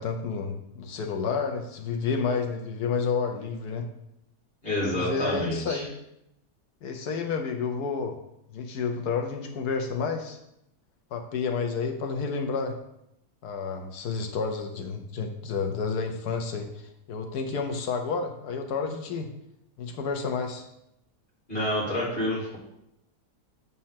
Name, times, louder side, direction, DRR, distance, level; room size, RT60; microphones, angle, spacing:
voice 1, 0.0-3.9 4.8-5.9 6.8-8.2 8.5-10.4 11.1-12.8 13.4-19.3 19.8-20.6, left 5 dB, 75° left, 5 dB, 1.3 m, -30 dB
voice 2, 4.6-5.9 21.5-22.6, left 1 dB, 35° left, -6 dB, 3.0 m, -28 dB
7.5 x 4.2 x 5.8 m, 0.80 s
omnidirectional pair, 1.7 m